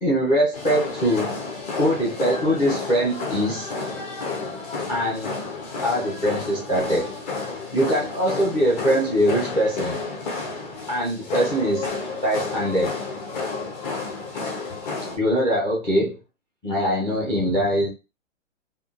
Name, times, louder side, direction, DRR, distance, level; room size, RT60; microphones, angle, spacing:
voice 1, 0.0-1.4 1.8-3.7 4.9-5.4 5.8-7.1 7.7-10.0 10.9-11.9 12.2-13.0 15.2-16.2 16.6-17.9, equal, 10° left, 0.5 m, -22 dB
sound 1, 0.5-15.2, left 4 dB, 35° left, 0.9 m, -31 dB
3.6 x 2.4 x 2.4 m
hypercardioid pair, 140°, 39 cm